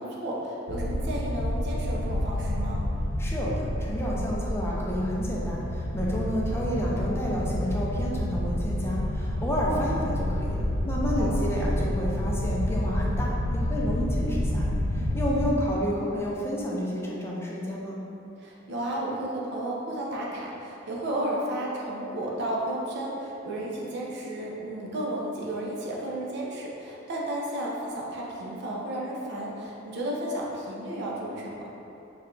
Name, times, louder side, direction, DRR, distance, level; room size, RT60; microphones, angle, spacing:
voice 1, 0.0-2.8 11.1-11.4 15.2-15.6 18.4-31.6, right 1 dB, 60° right, -4 dB, 0.5 m, -33 dB
sound 1, 0.7-15.5, left 1 dB, 80° left, 0.4 m, -29 dB
voice 2, 3.2-18.0, equal, 15° left, -4 dB, 0.4 m, -30 dB
3.3 x 2.2 x 3.7 m, 2.9 s
head